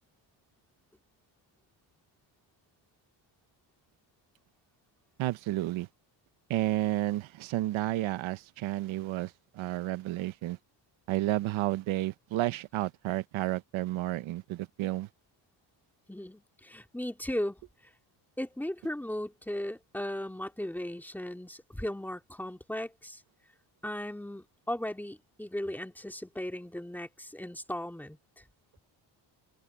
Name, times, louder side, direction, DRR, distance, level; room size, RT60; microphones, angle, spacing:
voice 1, 5.2-5.9 6.5-10.6 11.1-15.1, right 16 dB, 90° right, 0.9 m, -31 dB
voice 2, 16.1-17.6 18.4-23.2 23.8-28.2, left 1 dB, 5° left, 2.7 m, -37 dB
open air
cardioid pair, 140°, 46 cm